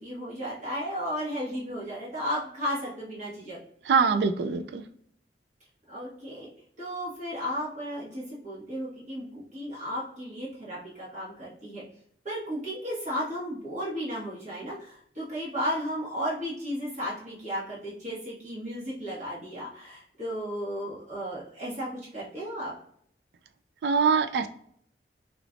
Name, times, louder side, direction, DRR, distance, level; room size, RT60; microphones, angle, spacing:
voice 1, 0.0-3.6 5.9-6.5 6.8-11.8 12.2-22.7, equal, 45° right, -8 dB, 1.4 m, -34 dB
voice 2, 3.9-4.8 23.8-24.5, right 5 dB, 70° right, 8 dB, 0.3 m, -23 dB
3.3 x 2.9 x 2.5 m, 0.65 s
head